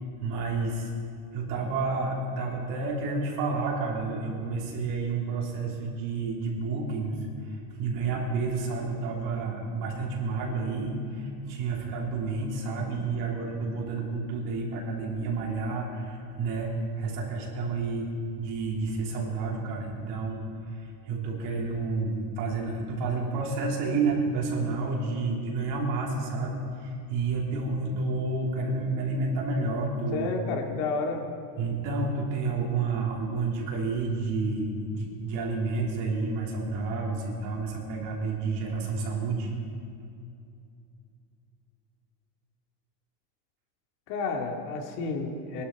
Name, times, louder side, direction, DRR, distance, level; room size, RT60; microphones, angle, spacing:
voice 1, 0.2-0.9 1.3-7.2 7.8-18.1 18.4-20.4 21.1-30.3 31.6-39.5, right 3 dB, 60° right, -2 dB, 3.5 m, -30 dB
voice 2, 30.1-31.3 44.1-45.6, left 4 dB, 65° left, 2 dB, 2.3 m, -31 dB
20.5 x 12.0 x 4.7 m, 2.6 s
supercardioid pair, 140°, 47 cm